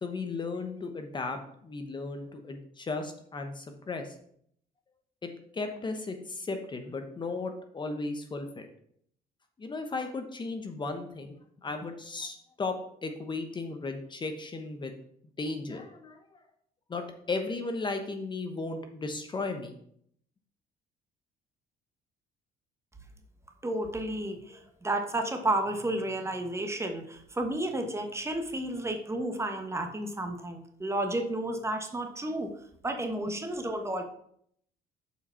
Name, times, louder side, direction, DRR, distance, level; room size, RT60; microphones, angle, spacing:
voice 1, 0.0-4.2 5.2-8.7 9.6-14.9 15.4-16.2 16.9-19.8, left 3 dB, 25° left, 6 dB, 1.0 m, -35 dB
voice 2, 23.6-32.5 32.8-34.0, right 1 dB, 15° right, 5 dB, 1.2 m, -32 dB
7.1 x 4.8 x 5.7 m, 0.66 s
cardioid pair, 110°, 17 cm